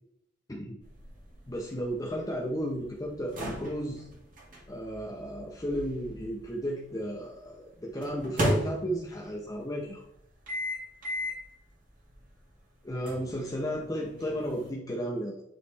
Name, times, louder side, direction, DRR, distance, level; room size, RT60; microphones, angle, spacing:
voice 1, 0.5-0.8 1.5-4.1 4.7-10.0 12.8-15.4, equal, 20° left, -1 dB, 0.7 m, -34 dB
sound 1, 0.8-6.9 8.0-9.3 10.5-11.5 12.0-12.1 13.1-14.7, equal, 45° right, 1.8 m, -35 dB
9.6 x 3.2 x 3.3 m, 0.77 s
head